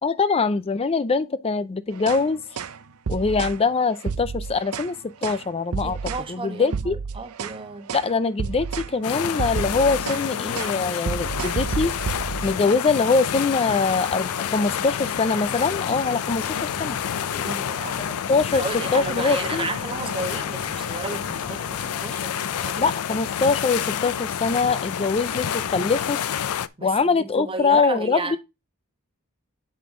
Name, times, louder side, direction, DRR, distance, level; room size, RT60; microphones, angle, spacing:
voice 1, 0.0-2.4 3.1-5.0 5.2-6.0 6.3-7.0 7.9-11.9 12.4-17.0 18.3-18.6 18.9-19.7 22.8-26.2 26.8-28.4, left 4 dB, 25° left, 0.4 m, -23 dB
sound 1, 1.9-2.2 2.6-2.8 3.1-3.6 4.0-4.9 5.2-5.4 5.7-6.3 6.6-7.6 7.9-8.1 8.4-8.9 9.2-10.3 10.5-10.8 11.1-12.6, right 5 dB, 80° right, 0.6 m, -30 dB
voice 2, 5.8-7.9 17.4-22.9 26.8-28.4, right 3 dB, 25° right, 1.1 m, -33 dB
sound 2, 9.0-26.7, left 9 dB, 85° left, 0.5 m, -29 dB
sound 3, 13.8-22.1, equal, 10° left, 1.1 m, -42 dB
7.7 x 5.3 x 3.7 m
head